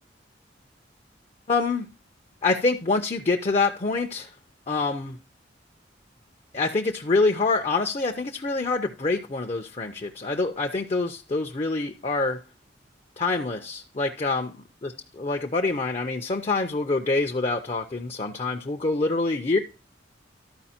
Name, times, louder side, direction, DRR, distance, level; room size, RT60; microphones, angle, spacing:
voice 1, 1.5-1.9 2.4-4.3 4.7-5.2 6.5-12.4 13.2-14.5 14.8-14.9 15.2-19.6, left 3 dB, 35° left, 0.6 m, -26 dB
12.5 x 4.8 x 4.3 m
head